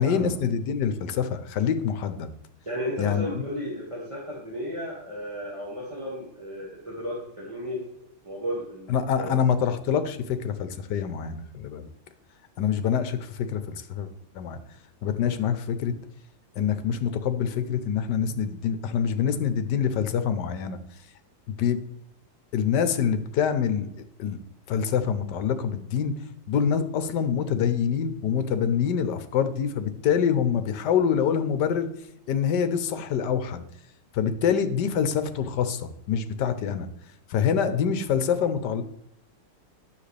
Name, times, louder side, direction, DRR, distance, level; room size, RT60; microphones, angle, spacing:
voice 1, 0.0-2.3 3.0-3.5 8.9-11.9 12.6-14.1 14.3-14.6 15.0-15.9 16.6-20.8 21.6-21.8 22.5-24.4 24.7-26.2 26.5-31.9 32.3-33.6 34.1-36.9 37.3-38.8, left 7 dB, 75° left, 10 dB, 1.3 m, -25 dB
voice 2, 2.7-7.8 8.2-9.4, equal, 15° right, -6 dB, 1.9 m, -34 dB
10.0 x 6.5 x 3.3 m, 0.80 s
omnidirectional pair, 1.9 m